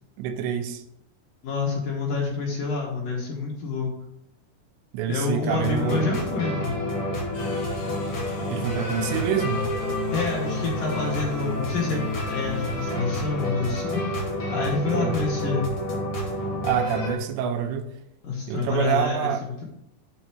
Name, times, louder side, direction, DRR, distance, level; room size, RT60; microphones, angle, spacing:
voice 1, 0.2-0.8 4.9-6.1 8.5-9.6 14.9-15.2 16.6-17.9 18.5-19.4, right 9 dB, 85° right, 6 dB, 3.0 m, -27 dB
voice 2, 1.4-3.9 5.1-6.9 10.1-14.0 14.5-15.6 18.2-19.6, left 4 dB, 60° left, -2 dB, 2.6 m, -28 dB
sound 1, 5.5-17.1, left 1 dB, 45° left, 1.9 m, -29 dB
sound 2, 7.3-12.9, left 3 dB, 85° left, 5.3 m, -45 dB
9.3 x 4.0 x 6.1 m, 0.82 s
omnidirectional pair, 5.0 m